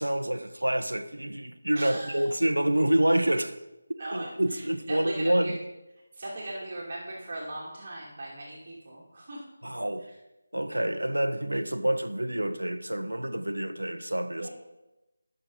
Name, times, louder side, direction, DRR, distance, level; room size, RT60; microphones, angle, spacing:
voice 1, 0.0-3.6 4.1-5.6 9.6-10.1 10.5-14.5, right 1 dB, 85° right, 1.0 m, -27 dB
voice 2, 1.7-2.3 4.0-5.6 6.1-9.4 10.1-10.2 14.4-14.5, right 1 dB, 40° right, 2.5 m, -39 dB
16.0 x 6.6 x 3.9 m
figure-of-eight pair, 160°, 0 cm